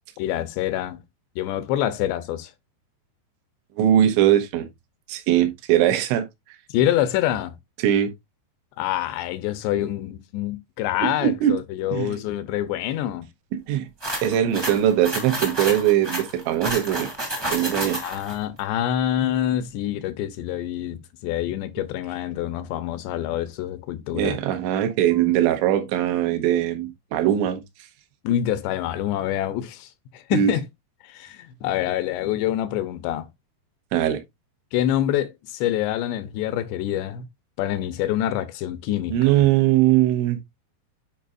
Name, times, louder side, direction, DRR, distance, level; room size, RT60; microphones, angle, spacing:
voice 1, 0.2-1.0 1.4-2.5 6.7-7.5 8.8-13.3 18.0-24.4 28.2-30.6 31.0-33.3 34.7-37.2 37.6-39.4, left 12 dB, 80° left, 2.8 m, -26 dB
voice 2, 3.8-4.7 5.1-6.3 7.8-8.1 11.0-11.6 11.9-12.2 13.5-13.9 14.2-17.1 17.5-18.0 24.1-27.6 30.3-30.5 33.9-34.2 39.1-40.4, right 11 dB, 80° right, 3.3 m, -21 dB
sound 1, 14.0-18.3, right 1 dB, 15° right, 0.7 m, -30 dB
9.2 x 5.5 x 2.5 m
omnidirectional pair, 5.2 m